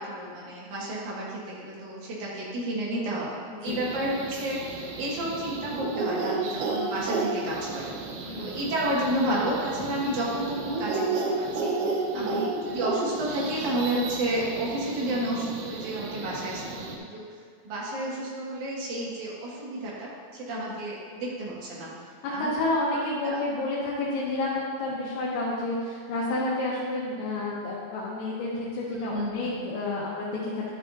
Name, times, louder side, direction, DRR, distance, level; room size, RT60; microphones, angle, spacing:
voice 1, 0.0-8.0 8.4-11.7 12.1-17.2 17.6-21.9 22.3-22.5 23.2-23.4 29.0-29.5, right 1 dB, 55° right, -6 dB, 2.8 m, -31 dB
sound 1, 3.7-17.0, right 3 dB, 85° right, 3.2 m, -32 dB
voice 2, 12.1-12.5 20.5-20.7 22.2-30.7, left 2 dB, 90° left, -6 dB, 3.5 m, -30 dB
11.5 x 8.9 x 2.6 m, 2.2 s
omnidirectional pair, 5.1 m